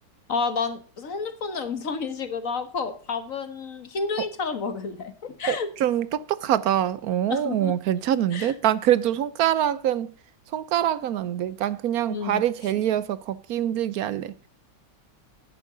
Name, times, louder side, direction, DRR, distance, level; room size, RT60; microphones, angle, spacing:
voice 1, 0.3-5.7 7.3-7.7 8.3-8.5 12.1-12.4, left 5 dB, 50° left, 1.7 m, -30 dB
voice 2, 5.5-10.1 10.5-14.3, right 11 dB, 65° right, 1.0 m, -24 dB
11.0 x 9.5 x 3.8 m
omnidirectional pair, 1.9 m